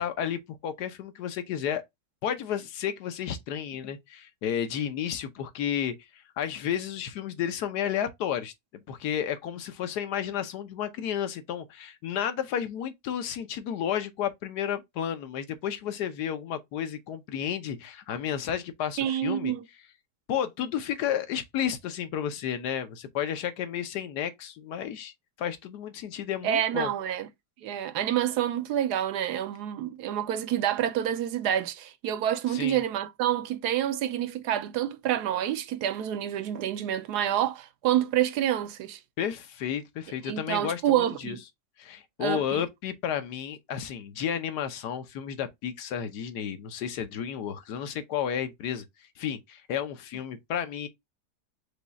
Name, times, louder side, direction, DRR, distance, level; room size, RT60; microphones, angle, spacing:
voice 1, 0.0-1.8 2.2-5.9 6.4-8.5 8.9-19.5 20.3-25.1 25.4-26.9 32.5-32.8 39.2-41.4 41.8-48.9 49.2-50.9, left 9 dB, 80° left, 1.3 m, -32 dB
voice 2, 19.0-19.6 26.4-27.3 27.6-39.0 40.3-41.4 42.2-42.6, right 11 dB, 85° right, 1.2 m, -28 dB
5.1 x 2.3 x 4.0 m
omnidirectional pair, 1.7 m